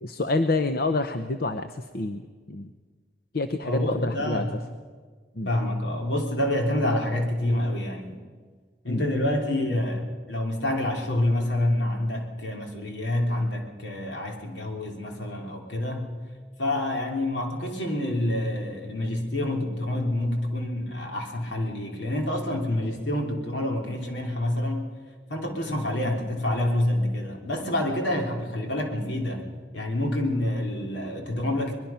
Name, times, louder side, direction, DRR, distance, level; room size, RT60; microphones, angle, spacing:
voice 1, 0.0-2.2 2.5-2.7 3.3-4.4 5.4-5.5 8.9-9.0, left 2 dB, 55° left, 9 dB, 0.8 m, -27 dB
voice 2, 3.6-4.5 5.4-8.2 8.8-16.1 16.6-24.9 25.3-29.5 29.7-31.7, left 1 dB, 75° left, 2 dB, 3.3 m, -27 dB
22.5 x 21.5 x 5.8 m, 1.5 s
head